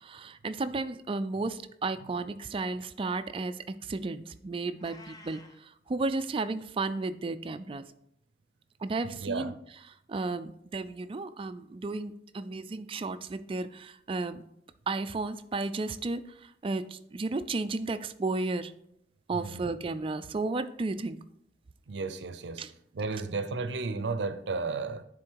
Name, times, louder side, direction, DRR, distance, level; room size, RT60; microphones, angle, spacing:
voice 1, 0.0-7.8 8.8-9.5 10.1-14.4 14.9-18.7 19.3-21.2 22.6-22.7, right 3 dB, 30° right, 0.4 m, -33 dB
Meow, 4.8-5.6, left 2 dB, 20° left, 0.7 m, -51 dB
voice 2, 9.0-9.5 19.3-19.6 21.9-22.6 22.9-25.0, right 4 dB, 75° right, 0.6 m, -33 dB
9.9 x 3.8 x 4.6 m
head